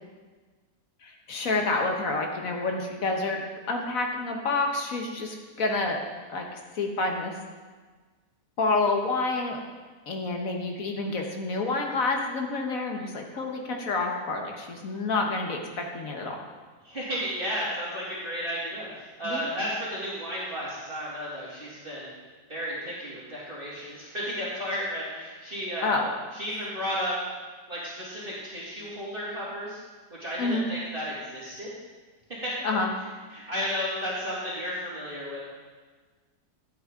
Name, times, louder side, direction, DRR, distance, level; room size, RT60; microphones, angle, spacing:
voice 1, 1.0-6.0 6.3-7.4 8.6-9.6 10.1-16.4 19.2-19.4 25.8-26.1 30.4-30.7 32.6-32.9, left 3 dB, 60° left, 2 dB, 1.5 m, -28 dB
voice 2, 16.8-22.1 22.5-26.0 26.3-27.2 27.7-29.8 30.1-31.7 32.4-32.5 33.3-35.4, equal, 35° right, -8 dB, 2.6 m, -33 dB
13.5 x 8.5 x 3.7 m, 1.4 s
omnidirectional pair, 1.7 m